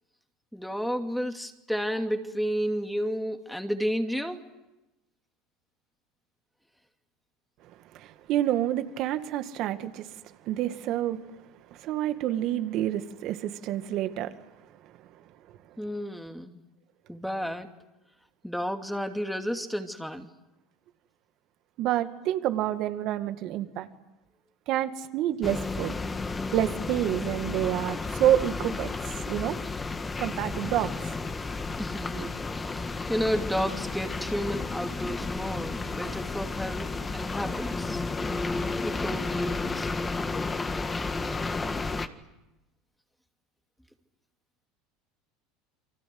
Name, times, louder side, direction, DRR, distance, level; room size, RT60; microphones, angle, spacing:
voice 1, 0.5-4.4 15.8-16.6 17.1-17.7 18.4-20.3 31.8-38.0 38.8-39.9, equal, ahead, 2.6 m, -32 dB
voice 2, 7.9-10.1 10.4-11.2 11.7-14.3 21.8-23.9 24.7-26.0 26.5-28.9 29.3-29.6 30.2-30.9 32.2-32.3, right 12 dB, 55° right, 2.1 m, -28 dB
sound 1, 25.4-42.1, left 3 dB, 20° left, 1.8 m, -32 dB
30.0 x 24.0 x 7.9 m
hypercardioid pair, 95°, 0 cm